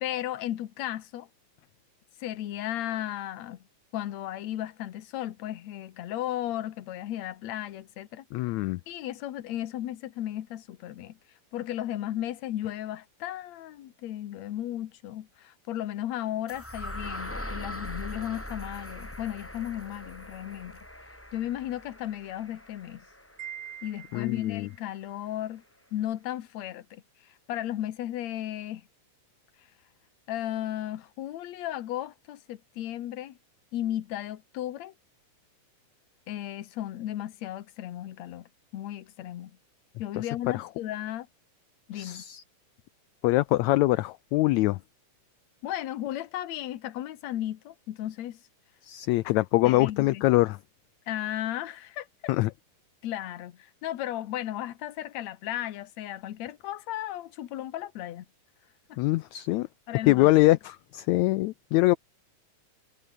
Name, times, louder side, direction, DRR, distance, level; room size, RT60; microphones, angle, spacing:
voice 1, 0.0-1.3 2.2-3.6 3.9-8.2 8.9-11.2 11.5-20.8 21.3-23.0 23.8-25.6 25.9-27.0 27.5-28.8 30.3-33.4 33.7-34.9 36.3-39.5 40.0-41.3 41.9-42.2 45.6-48.4 49.6-50.2 51.1-52.1 53.0-58.3 58.9-59.0 59.9-60.3, left 12 dB, 65° left, 2.2 m, -35 dB
voice 2, 8.3-8.8 24.1-24.7 40.2-40.3 40.5-40.7 41.9-42.4 43.2-44.8 48.8-50.6 52.3-52.5 59.0-59.7 60.1-62.0, left 18 dB, 85° left, 1.6 m, -24 dB
sound 1, 16.5-24.4, left 1 dB, 5° left, 2.8 m, -41 dB
Wind chime, 23.4-24.8, right 9 dB, 65° right, 3.4 m, -43 dB
omnidirectional pair, 3.8 m